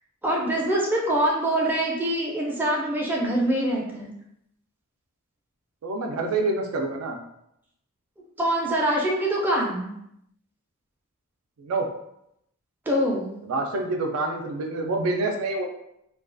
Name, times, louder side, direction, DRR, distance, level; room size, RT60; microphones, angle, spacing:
voice 1, 0.2-4.1 8.4-9.9 12.9-13.3, right 1 dB, 10° right, -3 dB, 0.4 m, -24 dB
voice 2, 5.8-7.2 11.6-11.9 13.5-15.6, right 2 dB, 80° right, 3 dB, 0.4 m, -27 dB
2.3 x 2.3 x 2.4 m, 0.79 s
head